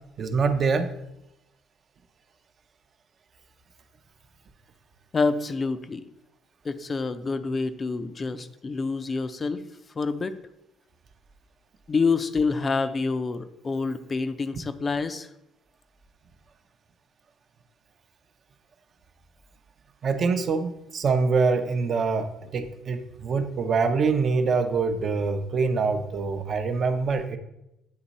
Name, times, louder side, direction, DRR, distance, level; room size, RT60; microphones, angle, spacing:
voice 1, 0.2-0.9 20.0-27.4, right 4 dB, 45° right, 7 dB, 0.6 m, -25 dB
voice 2, 5.1-6.0 6.6-9.6 10.0-10.4 11.9-15.3, left 4 dB, 30° left, 10 dB, 0.4 m, -27 dB
8.5 x 3.0 x 4.1 m, 0.85 s
cardioid pair, 100°, 0 cm